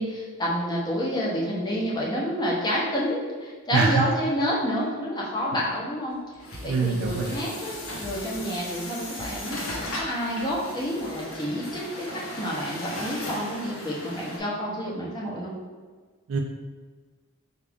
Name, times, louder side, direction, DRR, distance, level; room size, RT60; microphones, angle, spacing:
voice 1, 0.0-6.2 6.6-9.6 10.0-15.5, equal, 20° left, -5 dB, 0.7 m, -29 dB
voice 2, 3.7-4.0 6.6-7.4 16.3-16.4, right 4 dB, 65° right, 1 dB, 0.3 m, -24 dB
sound 1, 6.1-11.3 11.7-11.8, equal, 45° left, 0.9 m, -46 dB
Truck, 6.4-14.4, left 1 dB, 70° left, 0.8 m, -37 dB
4.6 x 2.4 x 3.4 m, 1.5 s
head